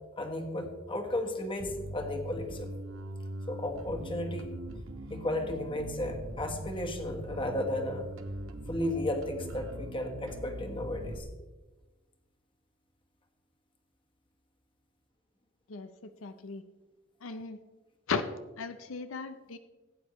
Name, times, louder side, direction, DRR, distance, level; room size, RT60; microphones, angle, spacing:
voice 1, 0.2-2.7 3.5-4.5 5.1-8.1 8.7-11.3, left 1 dB, 25° left, 3 dB, 1.4 m, -34 dB
Bass guitar, 1.6-11.2, right 1 dB, 90° right, 1.1 m, -41 dB
sound 1, 8.2-10.6, right 1 dB, 60° right, 1.8 m, -54 dB
voice 2, 15.7-16.6 17.2-17.6 18.1-18.2 18.6-19.6, left 5 dB, 85° left, 10 dB, 0.6 m, -36 dB
17.0 x 8.8 x 3.1 m, 1.2 s
head